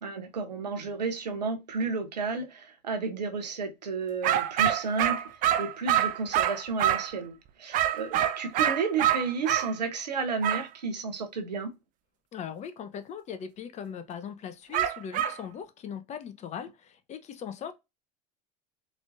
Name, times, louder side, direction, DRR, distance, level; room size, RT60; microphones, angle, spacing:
voice 1, 0.0-5.3 5.6-11.7, right 4 dB, 85° right, 0.8 m, -32 dB
sound 1, 4.2-7.1 7.7-9.7 10.4-10.7 14.7-15.4, right 11 dB, 40° right, 0.5 m, -26 dB
voice 2, 12.3-17.7, left 7 dB, 35° left, 0.8 m, -39 dB
4.1 x 3.2 x 2.5 m
figure-of-eight pair, 80°, 21 cm